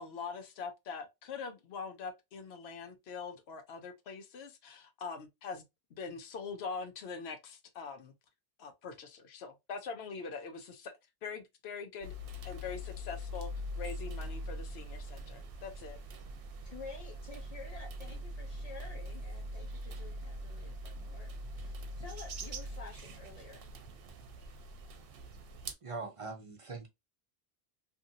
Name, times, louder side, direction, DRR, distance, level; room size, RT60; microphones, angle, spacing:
voice 1, 0.0-5.6 5.9-8.1 8.6-10.9 11.2-12.1 12.4-13.5 13.8-16.0, left 5 dB, 80° left, 1.0 m, -43 dB
sound 1, 12.0-25.7, equal, 65° right, 0.8 m, -43 dB
voice 2, 16.6-23.6, left 4 dB, 40° left, 0.7 m, -50 dB
voice 3, 25.8-26.9, right 3 dB, 40° right, 0.5 m, -42 dB
2.7 x 2.6 x 2.6 m
omnidirectional pair, 1.1 m